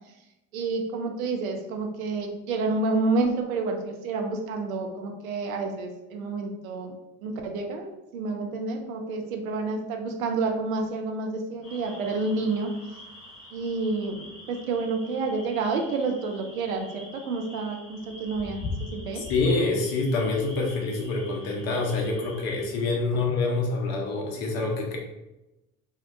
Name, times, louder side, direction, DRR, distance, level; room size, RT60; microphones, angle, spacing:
voice 1, 0.5-7.0 7.2-12.7 13.5-19.2, right 3 dB, 85° right, 4 dB, 0.5 m, -29 dB
sound 1, 11.6-22.7, left 3 dB, 30° left, 1.4 m, -43 dB
voice 2, 19.1-25.0, left 3 dB, 65° left, 0 dB, 0.9 m, -26 dB
2.7 x 2.3 x 3.3 m, 0.96 s
hypercardioid pair, 65°, 40 cm